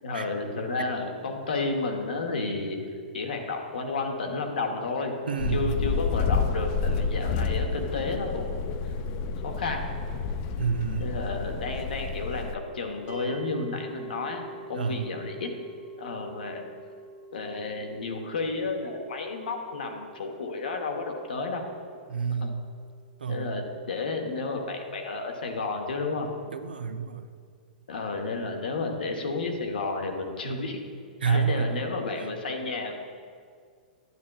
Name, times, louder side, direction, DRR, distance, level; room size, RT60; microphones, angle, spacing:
voice 1, 0.0-2.9 3.1-5.2 5.5-8.5 9.4-9.9 11.0-15.5 16.0-16.7 17.3-21.6 22.4-22.5 23.3-26.5 27.9-30.8 31.2-32.9, left 3 dB, 75° left, 3 dB, 1.0 m, -32 dB
voice 2, 5.3-5.8 10.6-11.1 14.7-15.1 22.1-22.7 23.2-23.7 26.5-27.3 31.2-31.8 32.2-32.3, right 6 dB, 85° right, 9 dB, 0.4 m, -29 dB
sound 1, 5.4-12.5, left 5 dB, 40° left, 0.4 m, -29 dB
sound 2, 13.1-24.2, right 3 dB, 45° right, 1.6 m, -47 dB
9.5 x 8.4 x 2.3 m, 2.1 s
hypercardioid pair, 115°, 5 cm